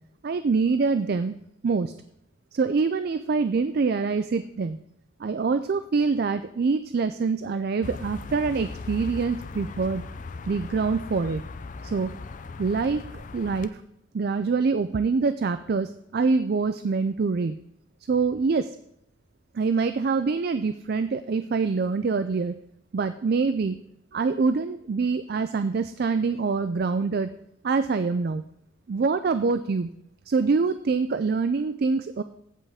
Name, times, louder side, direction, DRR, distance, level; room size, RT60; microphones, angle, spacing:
voice 1, 0.2-1.4 1.6-1.9 2.5-4.8 5.2-10.1 10.5-11.4 11.8-12.2 12.6-13.8 14.1-17.5 18.1-18.8 19.5-22.6 22.9-23.8 24.1-27.4 27.6-28.4 28.9-29.9 30.3-32.2, right 4 dB, 50° right, 11 dB, 0.4 m, -25 dB
sound 1, 7.8-13.7, left 3 dB, 40° left, 0.4 m, -38 dB
15.5 x 5.6 x 3.5 m, 0.77 s
head